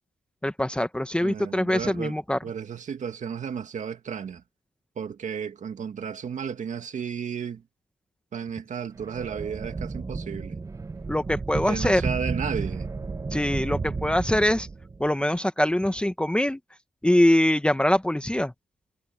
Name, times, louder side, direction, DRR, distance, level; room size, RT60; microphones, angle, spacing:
voice 1, 0.4-2.4 11.1-12.0 13.3-14.7 15.0-16.6 17.0-18.5, left 1 dB, 5° left, 1.0 m, -23 dB
voice 2, 1.2-4.4 5.0-7.6 8.3-10.6 11.5-12.9, right 7 dB, 60° right, 1.9 m, -33 dB
sound 1, 9.0-15.1, right 4 dB, 20° right, 0.5 m, -32 dB
wide cardioid pair, 135°, 14 cm